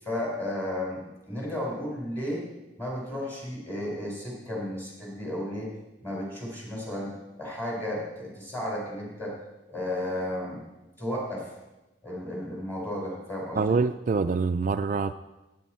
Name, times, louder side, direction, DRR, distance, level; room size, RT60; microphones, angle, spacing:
voice 1, 0.0-2.5 2.8-5.7 6.0-9.4 9.7-10.6 11.0-11.5 12.0-13.8, left 1 dB, 10° left, -2 dB, 4.3 m, -33 dB
voice 2, 13.6-15.1, right 4 dB, 45° right, 9 dB, 0.3 m, -25 dB
16.5 x 9.1 x 4.4 m, 1.0 s
head